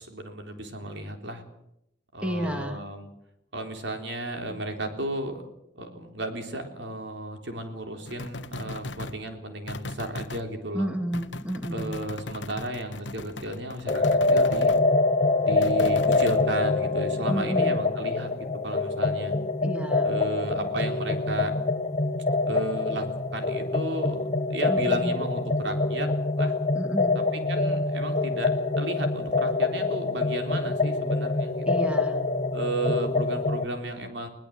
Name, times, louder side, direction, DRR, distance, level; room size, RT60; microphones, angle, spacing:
voice 1, 0.0-1.4 2.1-3.1 3.5-5.5 5.8-10.9 11.7-14.8 15.4-18.3 18.6-19.4 20.0-21.5 22.5-26.1 26.4-26.6 27.3-31.9 32.5-34.3, right 1 dB, 70° right, 5 dB, 3.7 m, -34 dB
voice 2, 2.2-2.8 10.7-12.0 17.3-17.9 19.6-20.1 24.7-25.1 26.7-27.3 31.7-32.2, right 1 dB, 5° right, 5 dB, 2.4 m, -31 dB
sound 1, 8.1-9.2 9.7-10.4 11.1-14.8 15.6-16.4, left 2 dB, 75° left, 1.2 m, -37 dB
sound 2, 13.9-33.7, left 3 dB, 35° left, 1.1 m, -25 dB
22.0 x 19.5 x 7.7 m, 0.81 s
head